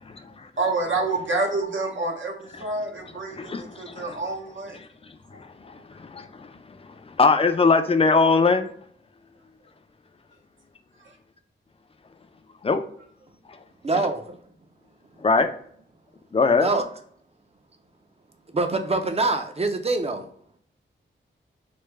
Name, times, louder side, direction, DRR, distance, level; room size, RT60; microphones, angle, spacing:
voice 1, 0.6-4.8, right 3 dB, 70° right, 0 dB, 0.8 m, -28 dB
voice 2, 3.0-4.2 4.7-4.9 5.3-6.5 6.8-8.7 12.6-12.8 15.2-15.5 16.3-16.7, left 4 dB, 30° left, 7 dB, 0.4 m, -22 dB
voice 3, 13.8-14.4 16.6-16.8 18.5-20.2, right 3 dB, 30° right, 6 dB, 0.5 m, -24 dB
3.2 x 2.1 x 3.3 m, 0.63 s
wide cardioid pair, 70°, 20 cm